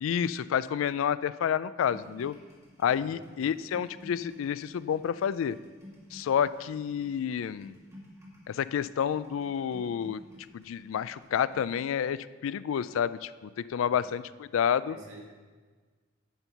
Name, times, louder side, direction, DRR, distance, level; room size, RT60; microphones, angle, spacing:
voice 1, 0.0-2.3 2.8-5.6 6.1-7.7 8.5-10.2 10.5-15.0, left 8 dB, 80° left, 16 dB, 0.3 m, -29 dB
sound 1, 1.9-11.6, left 1 dB, 15° right, 2.1 m, -53 dB
voice 2, 2.9-3.2 13.8-14.1 14.8-15.3, right 1 dB, 80° right, -2 dB, 2.0 m, -51 dB
10.0 x 4.5 x 6.8 m, 1.5 s
head